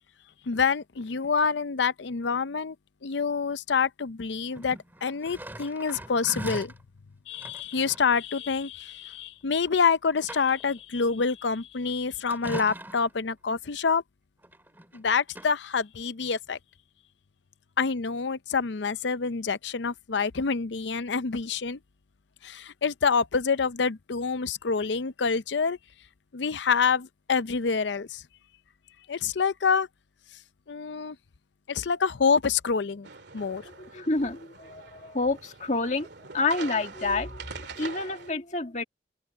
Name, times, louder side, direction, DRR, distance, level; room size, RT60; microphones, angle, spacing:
voice 1, 0.5-2.8 3.0-6.7 7.3-14.0 14.9-16.6 17.8-21.8 22.4-25.8 26.3-28.2 29.1-29.9 30.7-31.2 31.7-33.1 33.3-33.6, left 5 dB, 75° left, 0.6 m, -27 dB
sound 1, 4.5-6.8 7.3-8.1 9.6-9.7 10.1-10.8 12.3-13.2 14.4-15.0 15.3-15.5, right 1 dB, 10° right, 2.6 m, -40 dB
sound 2, 33.0-38.3, right 5 dB, 70° right, 2.4 m, -44 dB
voice 2, 33.6-36.1 36.3-38.8, left 3 dB, 40° left, 1.9 m, -29 dB
open air
head